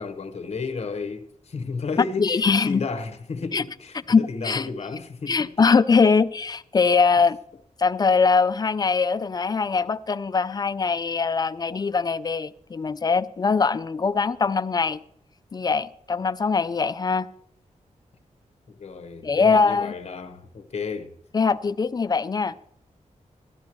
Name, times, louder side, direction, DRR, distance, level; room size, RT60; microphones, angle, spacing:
voice 1, 0.0-5.7 18.7-21.1, left 4 dB, 55° left, 1.1 m, -33 dB
voice 2, 2.2-2.8 3.5-3.6 4.1-4.7 5.3-7.4 7.8-15.0 15.5-17.3 19.2-19.9 21.3-22.6, left 5 dB, 30° left, 0.4 m, -22 dB
15.0 x 11.5 x 3.1 m
wide cardioid pair, 150°, 13 cm